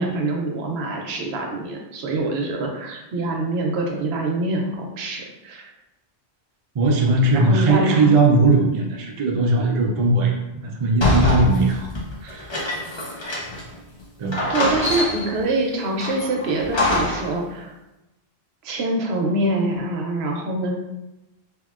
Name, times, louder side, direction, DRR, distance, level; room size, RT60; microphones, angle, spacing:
voice 1, 0.0-5.7 7.3-8.1 14.5-17.7 18.6-20.7, right 2 dB, 75° right, 1 dB, 0.8 m, -25 dB
voice 2, 6.7-11.9 12.2-12.5 14.2-14.5, right 2 dB, 55° right, 0 dB, 0.3 m, -19 dB
sound 1, 11.0-13.7 14.0-14.1 14.3-15.4 16.0-17.3, left 1 dB, 35° left, 0.5 m, -24 dB
2.8 x 2.8 x 2.4 m, 0.96 s
omnidirectional pair, 1.1 m